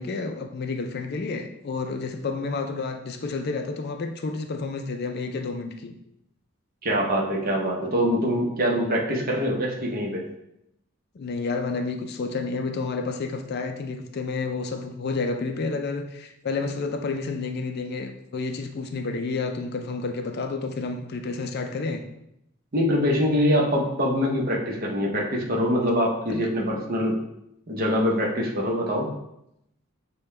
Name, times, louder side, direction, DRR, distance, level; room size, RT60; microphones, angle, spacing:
voice 1, 0.0-5.9 11.1-22.0 26.3-26.5, left 3 dB, 50° left, 6 dB, 0.4 m, -30 dB
voice 2, 6.8-10.2 22.7-27.2 27.7-29.1, equal, 45° right, -1 dB, 0.8 m, -24 dB
6.7 x 2.2 x 3.2 m, 0.82 s
head